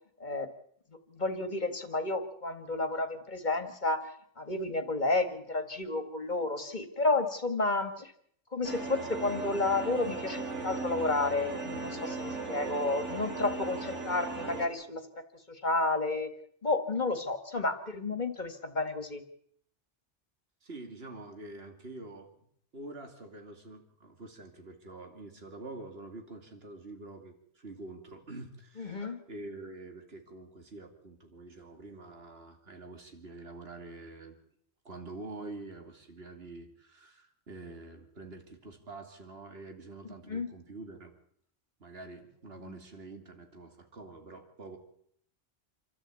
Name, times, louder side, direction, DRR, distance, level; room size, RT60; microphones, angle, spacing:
voice 1, 1.1-4.0 4.4-8.1 8.5-15.0 15.5-16.3 16.6-19.2 28.8-29.2 40.3-40.5 42.6-42.8, left 3 dB, 40° left, 8 dB, 2.2 m, -31 dB
sound 1, 8.6-14.7, right 3 dB, 75° right, 3.4 m, -37 dB
voice 2, 20.6-22.3 22.7-34.4 34.8-41.1 41.8-44.8, right 2 dB, 55° right, 5 dB, 2.9 m, -46 dB
27.5 x 13.0 x 8.5 m, 0.66 s
omnidirectional pair, 1.2 m